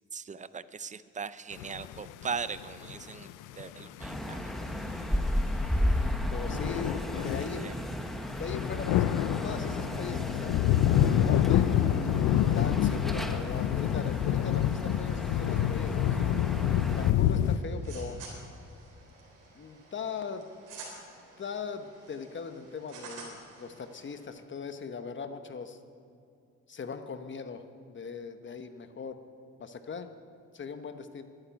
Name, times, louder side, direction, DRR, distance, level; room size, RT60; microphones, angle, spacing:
voice 1, 0.1-3.3 3.5-4.5 7.2-7.7, right 5 dB, 25° right, 15 dB, 0.5 m, -39 dB
sound 1, 1.6-7.6 8.1-8.2 8.4-17.6, left 11 dB, 90° left, 0.6 m, -27 dB
sound 2, 4.0-17.1, left 1 dB, ahead, 1.0 m, -34 dB
voice 2, 6.3-7.0 7.2-7.7 8.4-9.1 9.4-10.6 11.0-11.7 12.5-16.4 16.9-18.2 19.5-20.4 21.4-25.8 26.7-29.2 29.6-30.1 30.5-31.2, left 6 dB, 40° left, 9 dB, 1.1 m, -40 dB
sound 3, 17.4-24.3, right 3 dB, 90° right, 3.7 m, -50 dB
11.5 x 9.1 x 9.3 m, 2.5 s
cardioid pair, 90°, 30 cm